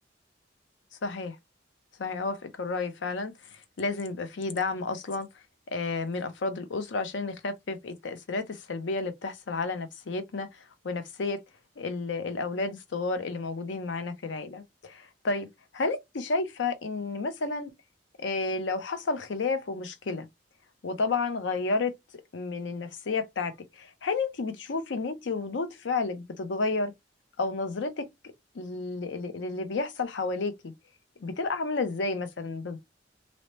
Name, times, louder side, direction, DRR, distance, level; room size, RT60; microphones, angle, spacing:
voice 1, 1.0-1.4 2.0-5.3 5.7-10.5 10.8-11.4 11.8-15.5 15.7-17.7 18.2-20.3 20.8-21.9 22.3-26.9 27.4-28.1 28.5-30.7 31.2-32.8, left 3 dB, 90° left, 0.6 m, -31 dB
2.8 x 2.0 x 3.0 m
head